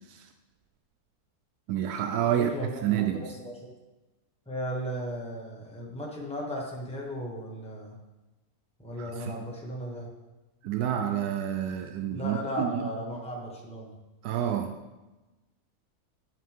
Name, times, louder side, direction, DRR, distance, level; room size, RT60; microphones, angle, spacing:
voice 1, 1.7-3.3 9.0-9.4 10.6-12.9 14.2-14.8, right 10 dB, 80° right, 6 dB, 1.1 m, -29 dB
voice 2, 2.3-3.7 4.5-8.0 8.8-10.1 12.1-14.0, equal, 5° left, -3 dB, 1.4 m, -36 dB
10.5 x 5.8 x 3.6 m, 1.1 s
omnidirectional pair, 1.6 m